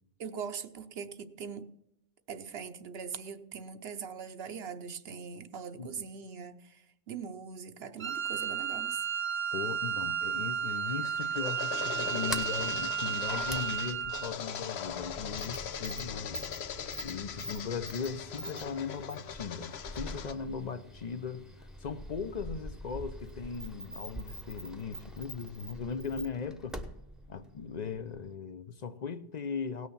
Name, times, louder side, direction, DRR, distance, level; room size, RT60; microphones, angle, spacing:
voice 1, 0.2-1.7 2.3-9.0, right 6 dB, 75° right, 1.0 m, -41 dB
Wind instrument woodwind instrument, 8.0-14.3, right 7 dB, 30° right, 0.8 m, -33 dB
voice 2, 9.5-16.4 17.0-26.8 27.3-29.9, left 6 dB, 50° left, 0.7 m, -38 dB
sound 1, 10.7-20.3, left 8 dB, 80° left, 1.0 m, -40 dB
Sliding door, 12.0-28.3, equal, ahead, 0.8 m, -45 dB
17.5 x 6.4 x 7.0 m
omnidirectional pair, 1.1 m